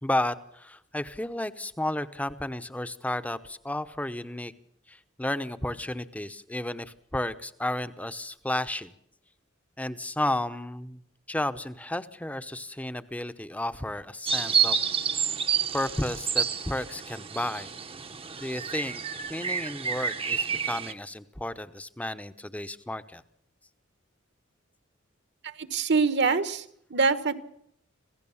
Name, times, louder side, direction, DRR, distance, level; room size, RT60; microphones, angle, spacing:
voice 1, 0.0-4.5 4.9-8.9 9.8-11.0 11.3-14.8 15.7-17.7 18.4-19.0 19.3-23.2, left 1 dB, 5° left, 12 dB, 0.9 m, -32 dB
sound 1, 14.3-20.9, right 6 dB, 30° right, 0.9 m, -29 dB
voice 2, 25.6-26.6 26.9-27.3, right 4 dB, 60° right, 11 dB, 1.4 m, -24 dB
26.5 x 16.5 x 7.2 m, 0.72 s
head